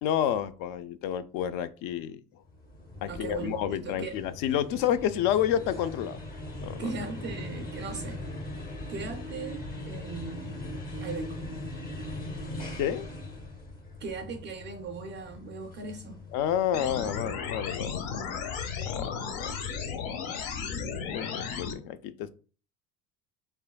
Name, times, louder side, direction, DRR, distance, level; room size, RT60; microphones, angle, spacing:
voice 1, 0.0-2.2 3.0-6.2 6.6-6.8 12.8-13.1 16.3-18.2 18.8-19.2 19.4-19.5 21.1-22.3, left 10 dB, 60° left, 0.5 m, -29 dB
sound 1, 2.5-17.0, left 1 dB, 25° left, 0.8 m, -40 dB
voice 2, 3.1-4.2 6.8-8.2 8.5-10.6 11.0-11.4 14.0-16.2 17.1-17.4, right 4 dB, 30° right, 0.4 m, -38 dB
sound 2, 16.7-21.7, left 6 dB, 75° left, 1.0 m, -34 dB
5.4 x 3.6 x 2.2 m
cardioid pair, 160°, 36 cm